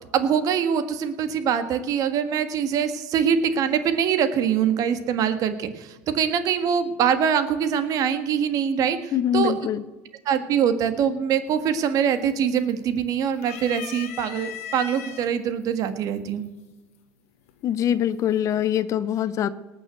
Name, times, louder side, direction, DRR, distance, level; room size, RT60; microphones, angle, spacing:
voice 1, 0.1-9.5 10.2-16.4, right 8 dB, 50° right, 10 dB, 1.7 m, -23 dB
voice 2, 9.1-9.8 17.6-19.5, left 10 dB, 45° left, 16 dB, 0.8 m, -23 dB
sound 1, 11.5-11.9 12.3-13.0 13.4-15.3 16.2-16.3 17.5-17.9, left 8 dB, 85° left, 1.4 m, -37 dB
19.0 x 6.4 x 7.9 m, 1.1 s
supercardioid pair, 95°, 7 cm